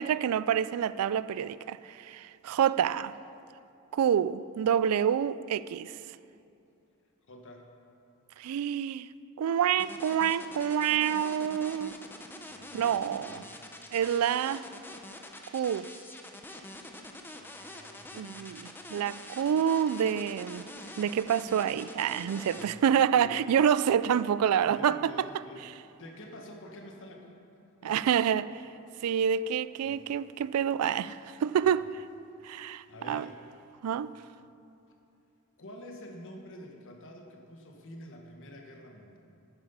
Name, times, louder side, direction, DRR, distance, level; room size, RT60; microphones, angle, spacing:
voice 1, 0.0-3.1 3.9-6.0 8.4-9.1 9.4-12.0 12.7-13.4 13.9-14.6 15.5-15.9 18.1-20.7 21.0-25.1 27.8-28.5 29.0-32.0 32.4-33.3 33.8-34.1, right 8 dB, 75° right, 0.3 m, -27 dB
voice 2, 7.3-7.7 12.5-12.9 13.2-13.7 17.3-18.6 22.5-22.8 23.1-23.6 24.6-25.7 26.0-27.4 27.8-28.1 29.8-30.2 32.9-33.4 35.6-39.2, left 1 dB, 60° left, 1.4 m, -48 dB
sound 1, 9.8-22.6, left 1 dB, 10° left, 0.7 m, -45 dB
9.9 x 9.3 x 5.5 m
head